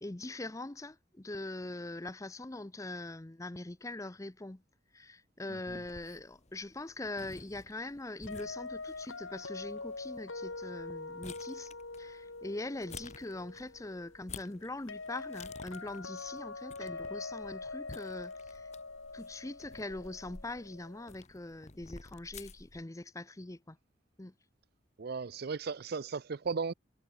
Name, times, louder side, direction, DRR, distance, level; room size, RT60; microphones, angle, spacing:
voice 1, 0.0-4.6 4.9-18.7 19.1-23.8 24.2-24.3, left 2 dB, 15° left, 0.6 m, -42 dB
voice 2, 5.5-5.8 25.0-26.7, right 4 dB, 50° right, 0.5 m, -36 dB
sound 1, 5.7-22.8, left 4 dB, 35° left, 1.4 m, -53 dB
sound 2, 8.3-21.1, left 3 dB, 80° left, 2.7 m, -44 dB
head